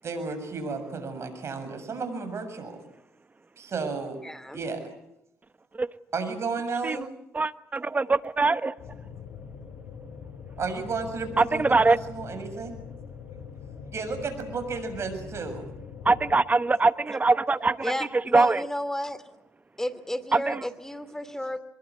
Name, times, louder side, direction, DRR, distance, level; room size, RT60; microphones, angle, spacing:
voice 1, 0.0-2.8 3.6-4.2 4.5-4.8 6.1-7.1 10.6-12.8 13.9-15.7, right 4 dB, 55° right, 7.1 m, -33 dB
voice 2, 4.2-4.6 17.8-19.2 19.8-21.6, left 1 dB, 10° left, 2.7 m, -32 dB
voice 3, 7.3-8.7 11.4-12.0 16.0-17.9 18.3-18.6 20.3-20.6, right 3 dB, 30° right, 1.2 m, -22 dB
sound 1, 8.8-16.4, left 6 dB, 70° left, 2.2 m, -42 dB
23.5 x 22.0 x 8.5 m
supercardioid pair, 60°, 6 cm